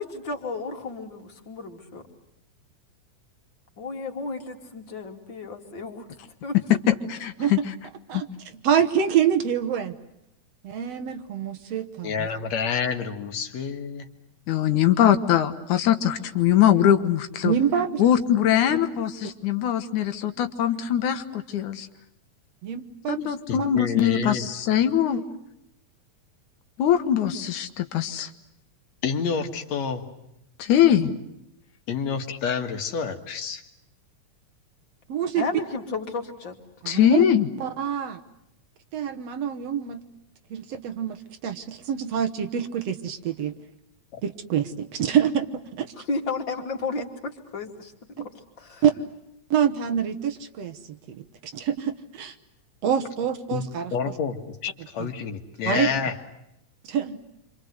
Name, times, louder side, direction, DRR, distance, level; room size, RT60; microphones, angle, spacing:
voice 1, 0.0-2.1 3.8-6.1 6.4-6.6 6.9-7.0 17.9-18.1 35.4-36.6 46.1-48.8, left 4 dB, 40° left, 3 dB, 3.2 m, -33 dB
voice 2, 7.1-7.6 8.1-8.2 14.5-17.5 18.0-21.9 23.1-25.2 26.8-28.3 30.6-31.1 36.9-37.5, left 10 dB, 85° left, 8 dB, 2.8 m, -22 dB
voice 3, 8.6-9.9 10.6-12.3 17.4-18.2 18.7-18.8 22.6-23.7 35.1-35.5 36.8-37.3 37.6-38.2 38.9-40.0 40.5-41.2 41.4-43.5 44.2-45.9 48.2-48.3 48.8-48.9 49.5-52.4 52.8-53.9 55.0-55.1 55.7-55.9 56.8-57.2, right 8 dB, 65° right, 9 dB, 2.2 m, -26 dB
voice 4, 12.0-14.1 23.5-24.4 29.0-30.0 31.9-33.6 44.1-44.2 53.5-53.6 53.9-56.1, left 6 dB, 65° left, 5 dB, 2.9 m, -28 dB
28.0 x 26.0 x 8.0 m, 0.82 s
omnidirectional pair, 3.4 m